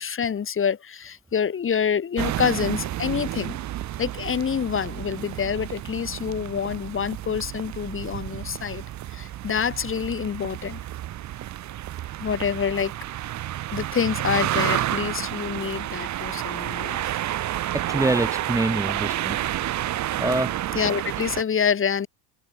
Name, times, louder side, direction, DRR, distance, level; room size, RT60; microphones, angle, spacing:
voice 1, 0.0-3.6 4.0-8.8 9.1-10.8 12.2-12.9 13.7-17.2 20.7-22.1, left 7 dB, 25° left, 1.5 m, -27 dB
sound 1, 2.2-21.4, right 13 dB, 35° right, 0.7 m, -30 dB
Acoustic guitar, 14.5-19.4, right 15 dB, 55° right, 2.8 m, -46 dB
voice 2, 17.7-19.5 20.2-20.6, right 2 dB, 5° right, 1.0 m, -25 dB
cardioid pair, 130°, 48 cm